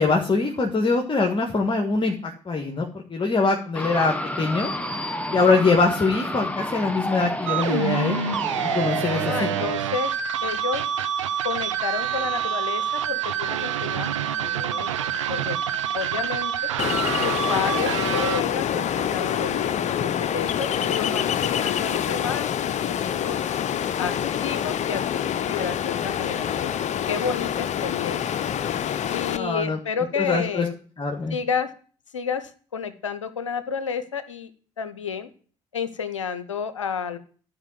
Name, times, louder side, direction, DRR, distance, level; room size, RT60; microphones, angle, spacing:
voice 1, 0.0-4.7 5.3-8.2 8.7-9.2 9.6-9.7 29.3-29.8 30.1-30.7 31.0-31.4, left 3 dB, 30° left, 1 dB, 1.7 m, -23 dB
sound 1, 3.7-9.7, left 1 dB, 10° left, 1.2 m, -30 dB
sound 2, 7.5-18.4, right 9 dB, 85° right, 0.5 m, -27 dB
voice 2, 9.0-10.1 10.4-10.8 11.4-14.1 14.4-14.9 15.3-15.6 15.9-16.5 17.2-23.4 24.0-25.0 25.5-26.7 27.1-28.3 29.1-30.8 31.3-31.7 32.1-34.5 34.8-35.3 35.7-37.2, left 6 dB, 85° left, 13 dB, 0.7 m, -30 dB
Ocean, 16.8-29.4, left 9 dB, 50° left, 0.7 m, -26 dB
12.0 x 5.0 x 7.6 m, 0.43 s
figure-of-eight pair, 45°, 16 cm